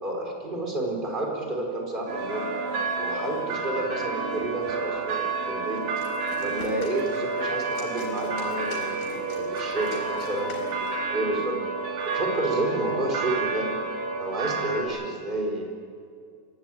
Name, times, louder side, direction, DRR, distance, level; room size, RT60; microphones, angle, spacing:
voice 1, 0.0-2.5 2.9-5.9 6.4-11.6 12.1-13.7 14.2-15.7, right 2 dB, 15° right, 0 dB, 3.9 m, -30 dB
sound 1, 2.1-14.8, right 3 dB, 75° right, 4.7 m, -30 dB
sound 2, 5.8-11.0, left 2 dB, 85° left, 6.0 m, -44 dB
24.5 x 16.5 x 9.0 m, 2.3 s
omnidirectional pair, 4.0 m